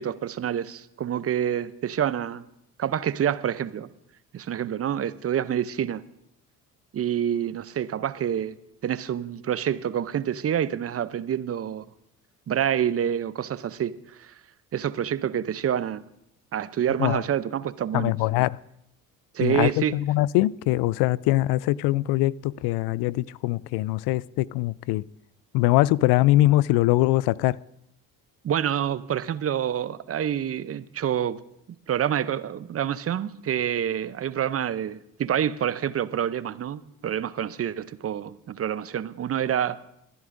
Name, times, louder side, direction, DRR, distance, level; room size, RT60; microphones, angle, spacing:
voice 1, 0.0-2.4 2.8-3.9 4.3-6.0 6.9-8.6 8.8-11.8 12.5-14.3 14.7-16.1 16.5-18.1 19.3-19.9 28.4-31.4 31.9-39.8, right 9 dB, 35° right, 0.6 m, -27 dB
voice 2, 17.9-18.6 19.4-25.0 25.5-27.6, left 17 dB, 65° left, 0.5 m, -22 dB
25.5 x 11.0 x 2.6 m
hypercardioid pair, 60°, 42 cm